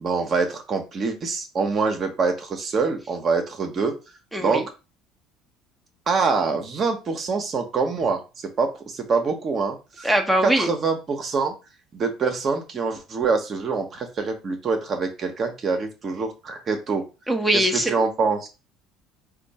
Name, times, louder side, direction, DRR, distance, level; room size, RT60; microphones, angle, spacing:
voice 1, 0.0-3.9 4.4-4.6 6.1-8.2 8.6-10.1 10.4-11.5 11.9-17.0 17.5-18.5, right 4 dB, 40° right, 4 dB, 1.0 m, -25 dB
voice 2, 4.3-4.7 10.0-10.7 17.3-17.9, right 1 dB, 5° right, 3 dB, 0.9 m, -21 dB
4.3 x 2.4 x 4.1 m, 0.29 s
figure-of-eight pair, 60°, 0 cm